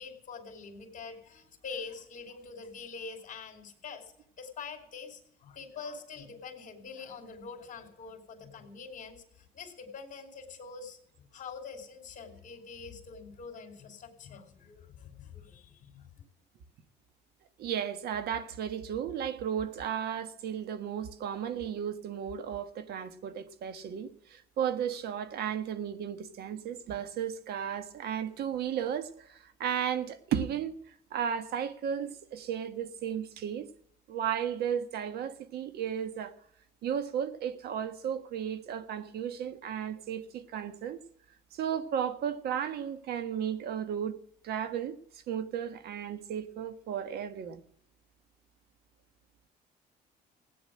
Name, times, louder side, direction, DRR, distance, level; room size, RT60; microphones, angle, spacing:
voice 1, 0.0-4.1 4.4-16.0, left 5 dB, 50° left, 3.0 m, -45 dB
voice 2, 17.6-30.7 31.1-33.7 34.1-36.3 36.8-41.0 41.5-44.2 44.4-44.9 45.3-47.6, right 8 dB, 70° right, 1.5 m, -34 dB
16.5 x 9.5 x 7.5 m
cardioid pair, 110°, 17 cm